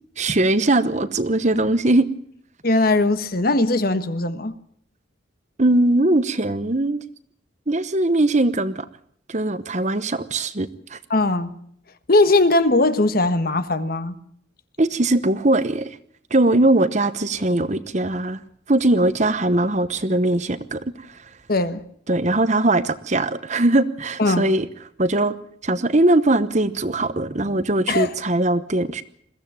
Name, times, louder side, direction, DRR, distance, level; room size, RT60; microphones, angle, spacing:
voice 1, 0.2-2.1 5.6-7.0 7.7-8.9 9.3-11.0 14.8-16.0 16.3-18.4 18.7-20.8 22.1-24.7 25.0-29.0, right 2 dB, 35° right, 13 dB, 1.0 m, -20 dB
voice 2, 2.6-4.5 11.1-11.5 12.1-14.2 21.5-21.8 24.2-24.5 27.9-28.1, left 2 dB, 50° left, 11 dB, 1.4 m, -19 dB
22.0 x 15.5 x 8.9 m, 0.65 s
head